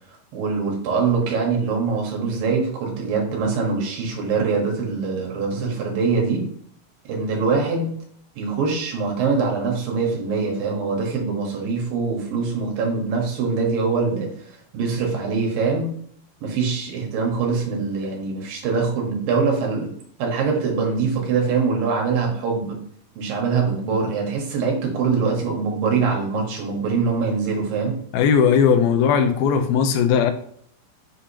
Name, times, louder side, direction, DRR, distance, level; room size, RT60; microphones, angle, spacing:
voice 1, 0.3-6.4 7.1-7.9 8.4-14.3 14.7-15.9 16.4-19.9 20.2-22.8 23.2-28.0, right 5 dB, 75° right, 0 dB, 3.3 m, -23 dB
voice 2, 28.1-30.3, left 7 dB, 90° left, 8 dB, 2.6 m, -18 dB
7.4 x 5.0 x 2.9 m, 0.66 s
omnidirectional pair, 4.1 m